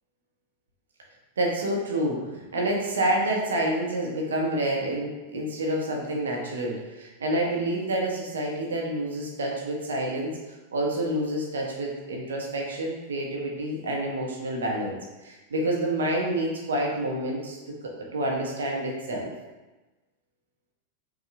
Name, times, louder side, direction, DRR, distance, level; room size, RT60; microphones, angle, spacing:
voice 1, 1.4-10.3 10.7-15.0 15.2-17.6 18.1-19.3, right 1 dB, 65° right, -1 dB, 0.9 m, -28 dB
5.5 x 2.4 x 3.3 m, 1.1 s
figure-of-eight pair, 90°, 0 cm